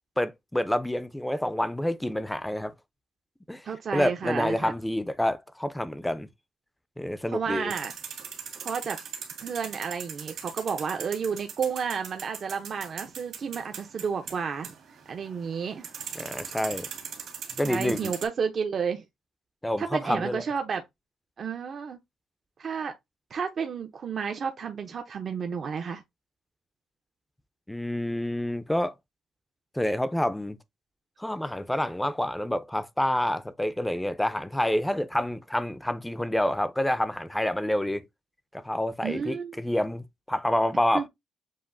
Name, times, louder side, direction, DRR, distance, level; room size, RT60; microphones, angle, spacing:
voice 1, 0.2-2.7 3.5-3.7 3.9-6.3 7.0-7.7 16.2-16.9 17.6-18.1 19.6-20.4 27.7-28.9 29.7-30.6 31.2-38.0 38.5-41.1, left 1 dB, 5° left, 0.5 m, -28 dB
voice 2, 3.6-4.7 7.3-7.9 8.6-9.0 9.4-14.7 15.1-15.9 17.6-19.0 19.8-20.8 21.4-22.0 22.6-22.9 23.3-26.0 39.0-39.6 40.9-41.0, right 6 dB, 50° right, 0.7 m, -31 dB
sound 1, 7.7-18.2, right 7 dB, 70° right, 1.7 m, -40 dB
7.4 x 2.5 x 2.6 m
cardioid pair, 90°, 0 cm